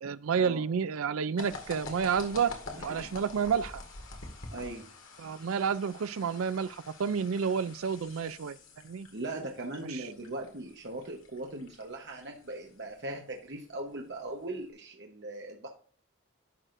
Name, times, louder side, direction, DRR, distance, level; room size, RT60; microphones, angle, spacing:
voice 1, 0.0-2.6 2.8-3.8 5.2-8.6 8.8-9.1 9.9-10.1, right 6 dB, 85° right, 0.4 m, -30 dB
sound 1, 1.4-14.7, left 3 dB, 75° left, 1.9 m, -48 dB
voice 2, 2.7-3.1 4.5-4.9 9.1-15.7, right 2 dB, 55° right, 1.0 m, -39 dB
11.0 x 6.3 x 2.5 m
head